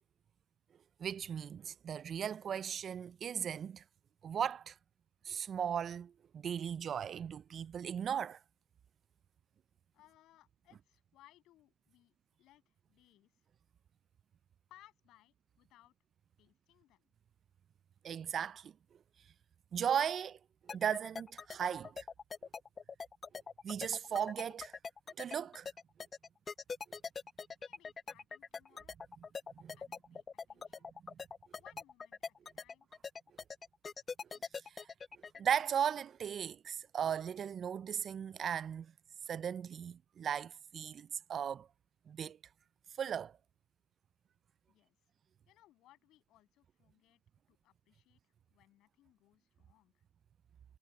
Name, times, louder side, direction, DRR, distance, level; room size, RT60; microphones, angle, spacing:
voice 1, 1.0-3.8 4.2-4.7 5.3-8.4 18.0-18.7 19.7-20.4 20.7-22.0 23.6-24.7 25.2-25.7 29.6-29.7 35.4-38.9 39.3-41.7 42.1-42.4 43.0-43.3, right 8 dB, 35° right, 0.3 m, -37 dB
voice 2, 9.9-13.5 14.7-15.9 16.4-17.1 27.6-29.0 29.7-30.9 31.6-32.9 44.7-45.0 45.5-47.2 47.5-50.0, left 15 dB, 55° left, 7.8 m, -66 dB
sound 1, 20.7-35.4, left 5 dB, 20° left, 0.7 m, -43 dB
supercardioid pair, 120°, 0 cm